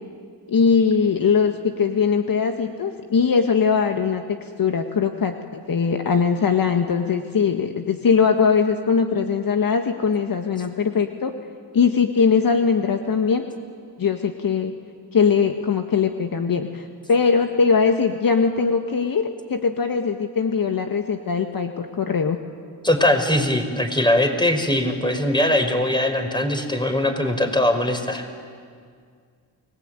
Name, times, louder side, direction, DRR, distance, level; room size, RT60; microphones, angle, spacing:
voice 1, 0.5-11.3 11.7-13.5 14.0-14.7 15.1-22.4, left 5 dB, 50° left, 5 dB, 1.8 m, -21 dB
voice 2, 22.8-28.3, left 1 dB, 10° left, 6 dB, 5.1 m, -21 dB
29.5 x 19.5 x 9.1 m, 2.1 s
supercardioid pair, 60°, 45 cm